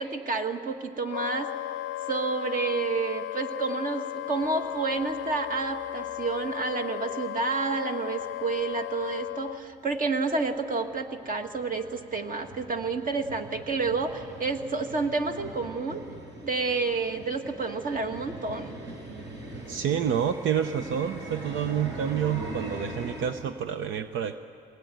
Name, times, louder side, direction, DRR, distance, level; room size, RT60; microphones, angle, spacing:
voice 1, 0.0-1.5 2.1-16.0 16.4-18.8, right 4 dB, 45° right, 5 dB, 2.0 m, -29 dB
Wind instrument woodwind instrument, 1.1-9.6, left 15 dB, 80° left, 0.6 m, -35 dB
sound 1, 4.4-6.5 6.8-6.9 7.4-7.5 7.8-7.9 8.2-23.3, right 1 dB, 65° right, 7.5 m, -42 dB
voice 2, 19.7-24.4, right 8 dB, 80° right, 9 dB, 0.8 m, -28 dB
23.5 x 19.5 x 9.4 m, 2.5 s
cardioid pair, 90°, 20 cm